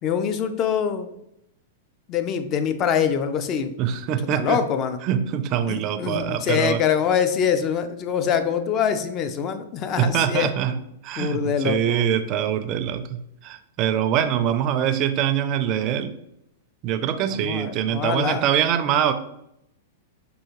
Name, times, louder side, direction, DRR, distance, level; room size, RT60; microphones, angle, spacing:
voice 1, 0.0-1.1 2.1-3.7 4.3-5.0 5.7-10.5 11.2-12.1 17.3-18.4, left 7 dB, 35° left, 9 dB, 0.4 m, -24 dB
voice 2, 3.8-4.6 5.0-6.8 10.0-10.8 11.0-16.1 16.8-19.1, right 9 dB, 40° right, 10 dB, 0.4 m, -24 dB
4.7 x 2.5 x 2.9 m, 0.79 s
hypercardioid pair, 120°, 0 cm